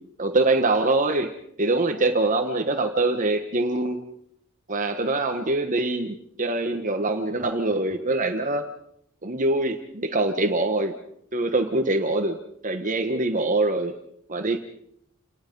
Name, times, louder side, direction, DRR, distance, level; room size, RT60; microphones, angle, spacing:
voice 1, 0.2-1.3 1.6-4.0 4.7-8.6 9.2-10.9 11.3-13.9 14.3-14.6, right 2 dB, 35° right, 6 dB, 1.2 m, -24 dB
29.0 x 19.5 x 5.4 m, 0.73 s
head